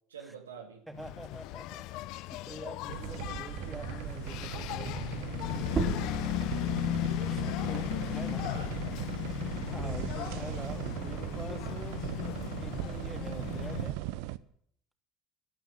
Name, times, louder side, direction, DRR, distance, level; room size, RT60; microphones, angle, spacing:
voice 1, 0.1-0.8 7.6-9.2, right 6 dB, 90° right, 4 dB, 2.4 m, -47 dB
voice 2, 0.9-2.0 2.4-5.3 7.3-8.5 9.7-12.1 12.3-14.0, right 1 dB, 5° right, 6 dB, 2.8 m, -46 dB
Engine, 1.0-14.0, left 16 dB, 60° left, 0.6 m, -36 dB
sound 1, 2.9-14.4, right 16 dB, 70° right, 0.8 m, -38 dB
sound 2, 5.7-10.9 11.3-13.1, right 4 dB, 35° right, 2.6 m, -40 dB
14.0 x 13.0 x 7.7 m, 0.64 s
hypercardioid pair, 70°, 0 cm